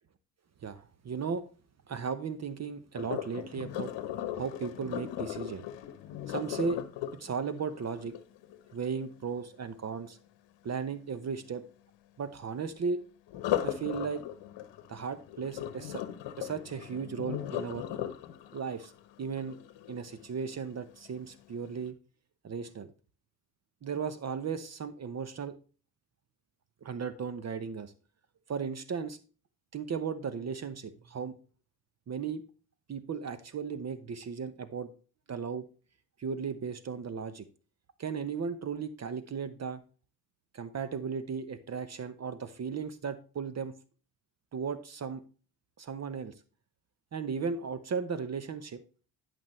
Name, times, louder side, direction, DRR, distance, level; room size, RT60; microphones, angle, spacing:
voice 1, 0.6-1.5 1.9-3.9 4.3-5.7 6.3-6.8 7.1-8.2 8.7-10.2 10.6-11.6 12.2-13.0 13.6-14.2 14.9-16.0 16.4-17.9 18.5-18.9 19.2-19.6 19.9-22.0 22.4-22.9 23.8-25.6 26.8-27.9 28.5-29.2 29.7-31.4 32.1-32.4 32.9-34.9 35.3-35.6 36.2-37.4 38.0-39.8 40.5-43.7 44.5-45.2 45.8-46.3 47.1-48.8, right 6 dB, 30° right, 13 dB, 0.9 m, -36 dB
Sink (filling or washing), 3.0-8.9 13.3-20.3 20.8-21.2 21.7-21.8, left 11 dB, 60° left, 1.1 m, -37 dB
11.0 x 6.0 x 3.1 m, 0.38 s
supercardioid pair, 75°, 49 cm